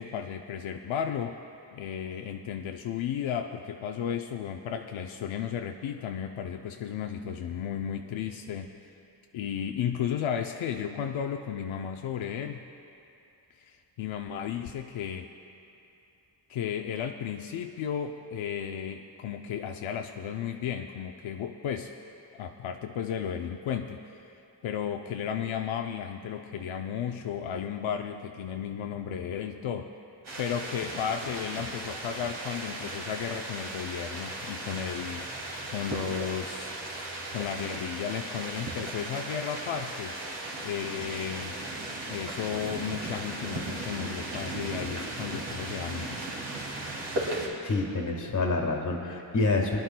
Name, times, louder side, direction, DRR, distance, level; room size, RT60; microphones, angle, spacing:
voice 1, 0.0-1.4 1.7-8.7 9.3-12.6 13.6-15.3 16.5-21.9 22.3-24.2 24.6-29.9 30.4-35.3 35.7-36.7 37.3-40.2 40.6-41.6 42.1-46.3, left 8 dB, 85° left, 4 dB, 0.6 m, -34 dB
sound 1, 30.2-47.5, right 2 dB, 60° right, 2.4 m, -36 dB
voice 2, 47.6-49.8, left 3 dB, 40° left, 2 dB, 1.5 m, -27 dB
23.5 x 11.0 x 2.2 m, 2.7 s
wide cardioid pair, 150°, 46 cm